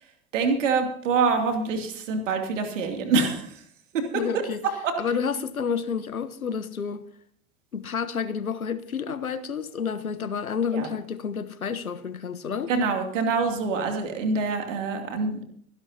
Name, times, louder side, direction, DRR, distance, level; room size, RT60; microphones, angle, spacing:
voice 1, 0.3-3.5 3.9-4.4 4.8-4.9 10.7-10.9 12.7-15.4, right 4 dB, 60° right, 2.7 m, -25 dB
voice 2, 4.1-4.6 5.0-7.0 7.7-12.7, left 6 dB, 80° left, 1.1 m, -30 dB
25.0 x 11.0 x 2.8 m
figure-of-eight pair, 85°, 42 cm